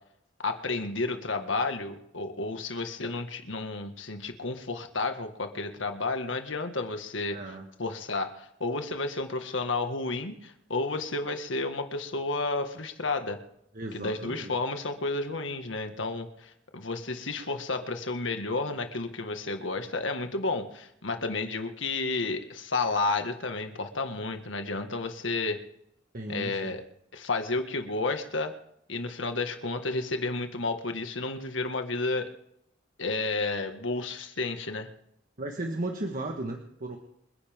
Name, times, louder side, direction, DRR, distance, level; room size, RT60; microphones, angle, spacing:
voice 1, 0.4-7.4 7.8-13.4 13.9-25.6 26.3-26.8 27.1-28.5 28.9-32.3 33.0-34.9, left 3 dB, 75° left, 6 dB, 1.8 m, -31 dB
voice 2, 7.3-7.7 13.7-14.6 26.1-26.8 35.4-37.0, right 2 dB, 45° right, 3 dB, 1.4 m, -35 dB
27.5 x 10.0 x 3.7 m, 0.77 s
head